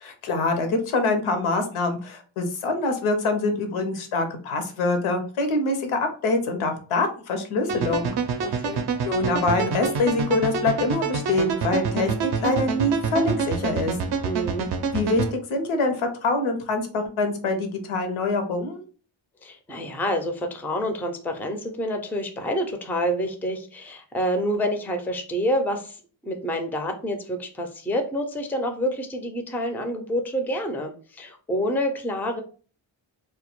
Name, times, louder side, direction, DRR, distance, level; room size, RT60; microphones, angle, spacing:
voice 1, 0.0-8.1 9.0-14.0 14.9-18.8, left 2 dB, 85° left, 6 dB, 0.7 m, -25 dB
sound 1, 7.7-15.3, right 5 dB, 55° right, 0.5 m, -27 dB
voice 2, 8.4-8.8 14.2-14.7 19.4-32.4, equal, 5° left, 5 dB, 0.3 m, -28 dB
2.1 x 2.1 x 2.9 m, 0.40 s
cardioid pair, 60°, 48 cm